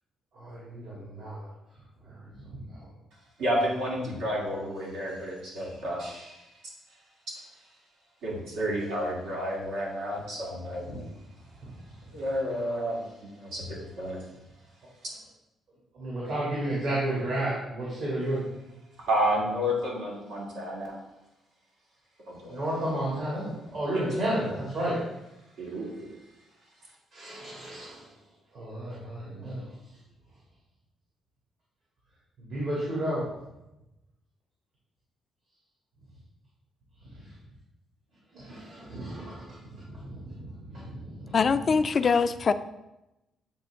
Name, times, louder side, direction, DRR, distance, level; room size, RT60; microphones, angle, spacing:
voice 1, 0.3-1.5 2.0-2.8 10.9-11.0 15.9-18.4 22.5-25.0 27.1-28.1 28.5-29.6 32.4-33.2 38.3-41.3, right 1 dB, 65° right, -7 dB, 2.2 m, -32 dB
voice 2, 3.4-6.5 8.2-10.9 12.1-14.2 19.1-20.9 22.3-22.6 23.9-24.0 25.6-26.1, equal, 90° right, -4 dB, 2.0 m, -31 dB
voice 3, 41.3-42.5, left 5 dB, 45° left, 11 dB, 0.3 m, -23 dB
8.4 x 3.7 x 3.4 m, 0.94 s
cardioid pair, 90°, 0 cm